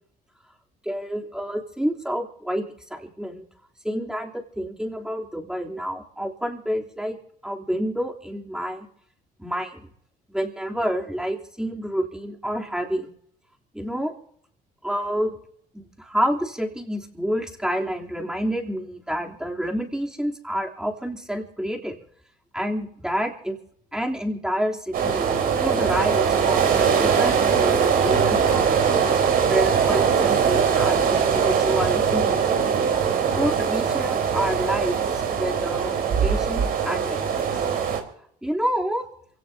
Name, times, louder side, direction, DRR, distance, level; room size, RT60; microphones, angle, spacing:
voice 1, 0.8-2.6 2.9-3.4 3.8-7.2 7.4-8.9 9.4-9.9 10.3-13.1 13.7-14.1 14.8-15.4 15.7-22.0 22.5-23.6 23.9-25.3 25.6-28.7 29.5-32.4 33.3-37.5 38.4-39.1, equal, 5° right, 0 dB, 3.2 m, -28 dB
sound 1, 24.9-38.0, right 7 dB, 60° right, 3.9 m, -21 dB
27.5 x 17.0 x 2.8 m, 0.67 s
cardioid pair, 110°, 17 cm